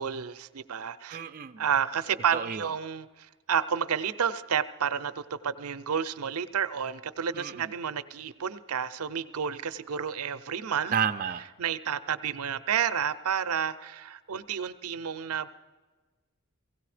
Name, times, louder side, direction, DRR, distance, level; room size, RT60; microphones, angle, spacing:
voice 1, 0.0-1.2 1.6-10.9 11.6-15.5, right 7 dB, 80° right, 13 dB, 0.6 m, -30 dB
voice 2, 1.1-1.6 2.3-2.7 7.3-7.7 10.9-11.5, right 7 dB, 40° right, 5 dB, 0.5 m, -31 dB
17.0 x 17.0 x 4.9 m, 1.3 s
head